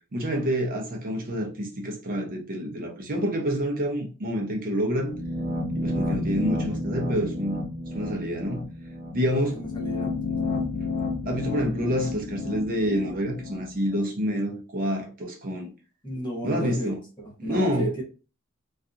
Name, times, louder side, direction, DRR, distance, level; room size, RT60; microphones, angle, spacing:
voice 1, 0.1-5.2 5.7-7.6 7.9-8.6 9.1-9.6 10.8-10.9 11.2-15.7 16.4-17.0 17.4-17.9, equal, 40° right, 0.6 m, -27 dB
sound 1, 5.1-14.0, left 2 dB, 50° left, 0.8 m, -31 dB
voice 2, 5.9-6.4 9.7-10.6 16.0-16.9 17.2-18.0, right 1 dB, 20° left, 0.9 m, -34 dB
2.7 x 2.4 x 2.4 m
head